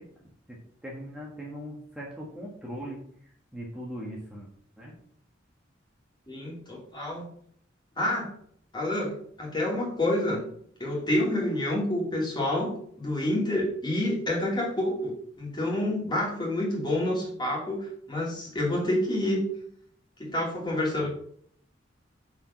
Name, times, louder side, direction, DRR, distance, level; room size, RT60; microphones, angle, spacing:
voice 1, 0.0-4.5 4.8-4.9 21.0-21.1, equal, 5° right, -4 dB, 1.4 m, -40 dB
voice 2, 6.3-7.2 8.0-8.3 8.7-10.4 10.8-19.4 20.2-21.1, left 1 dB, 25° left, -2 dB, 2.8 m, -28 dB
6.7 x 4.9 x 5.8 m, 0.63 s
head